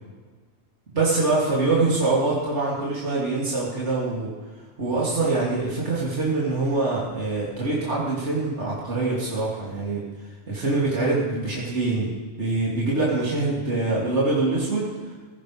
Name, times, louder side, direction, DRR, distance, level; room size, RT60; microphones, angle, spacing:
voice 1, 0.9-4.3 4.8-10.0 10.5-12.1 12.4-15.1, right 3 dB, 75° right, -6 dB, 3.1 m, -24 dB
17.0 x 15.5 x 3.4 m, 1.5 s
omnidirectional pair, 1.2 m